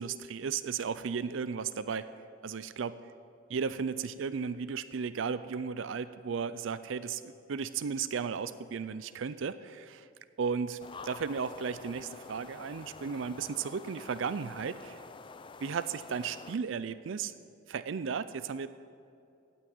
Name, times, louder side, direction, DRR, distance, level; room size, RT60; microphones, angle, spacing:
voice 1, 0.0-2.1 2.4-3.1 3.5-10.1 10.4-15.0 15.6-17.3 17.7-18.7, right 6 dB, 75° right, 13 dB, 0.4 m, -35 dB
sound 1, 10.8-16.6, left 4 dB, 25° left, 0.4 m, -48 dB
15.5 x 6.3 x 9.4 m, 2.5 s
head